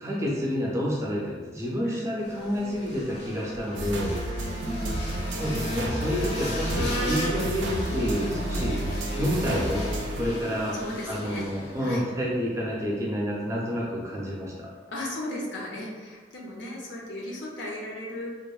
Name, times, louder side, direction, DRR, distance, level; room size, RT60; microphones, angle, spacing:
voice 1, 0.0-4.1 5.3-8.8 9.2-10.8 11.1-14.7, equal, 15° right, -4 dB, 0.4 m, -29 dB
sound 1, 2.2-12.0, equal, 40° left, 0.5 m, -35 dB
sound 2, 3.8-10.3, right 1 dB, 85° right, 0.3 m, -31 dB
voice 2, 4.6-4.9 10.7-11.5 11.8-12.0 14.9-18.3, left 1 dB, 85° left, -3 dB, 0.6 m, -36 dB
2.8 x 2.0 x 2.3 m, 1.4 s
head